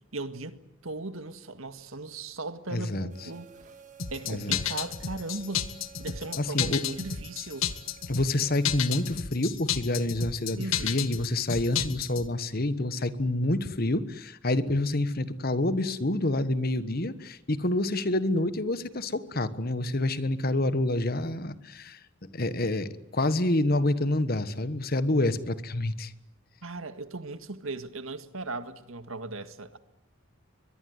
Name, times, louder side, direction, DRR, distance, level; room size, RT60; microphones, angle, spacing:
voice 1, 0.1-0.6 0.8-3.5 4.1-5.7 6.0-7.7 10.6-11.0 26.6-29.8, right 2 dB, 80° right, 1.8 m, -37 dB
voice 2, 2.7-3.1 4.3-4.6 6.3-6.8 8.1-26.1, left 1 dB, 45° left, 1.3 m, -28 dB
sound 1, 3.1-9.2, right 5 dB, 35° right, 2.0 m, -53 dB
sound 2, 4.0-12.3, left 9 dB, 80° left, 1.5 m, -32 dB
23.0 x 22.5 x 9.5 m
head